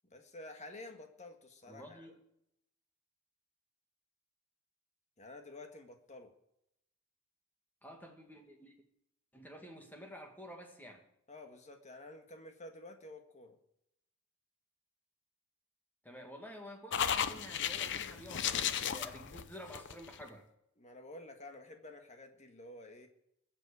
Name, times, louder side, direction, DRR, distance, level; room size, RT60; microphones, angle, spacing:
voice 1, 0.1-2.1 5.2-6.3 11.3-13.6 20.8-23.1, left 2 dB, 35° left, 5 dB, 1.7 m, -51 dB
voice 2, 1.7-2.2 7.8-8.7 9.3-11.1 16.0-20.4, equal, 10° left, 2 dB, 2.0 m, -50 dB
sound 1, 16.9-20.2, left 8 dB, 55° left, 0.7 m, -35 dB
21.0 x 7.7 x 5.0 m, 0.79 s
head